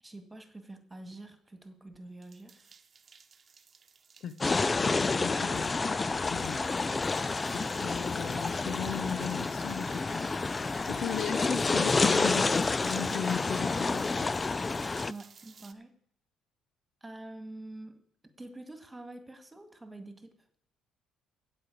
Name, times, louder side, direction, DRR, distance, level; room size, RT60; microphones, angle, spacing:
voice 1, 0.0-2.7 15.1-15.9 17.0-18.0 18.4-20.3, right 2 dB, 15° right, 8 dB, 2.0 m, -46 dB
sound 1, 2.2-15.7, right 6 dB, 40° right, 1.0 m, -55 dB
voice 2, 4.2-5.7 6.3-6.6 7.5-10.3 10.8-14.3, left 8 dB, 65° left, 13 dB, 0.9 m, -37 dB
sound 2, 4.4-15.1, left 3 dB, 25° left, 0.4 m, -29 dB
15.5 x 5.4 x 8.4 m, 0.64 s
supercardioid pair, 75°, 0 cm